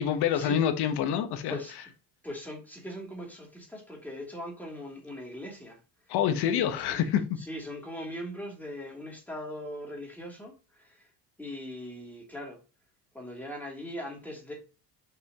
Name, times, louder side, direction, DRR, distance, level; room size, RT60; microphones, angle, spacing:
voice 1, 0.0-1.6 6.1-7.4, left 9 dB, 60° left, 1.3 m, -27 dB
voice 2, 2.2-5.8 6.5-7.1 7.4-11.1 11.4-12.6 13.1-14.5, equal, 5° left, 2.9 m, -40 dB
6.1 x 5.5 x 3.0 m
cardioid pair, 135°, 44 cm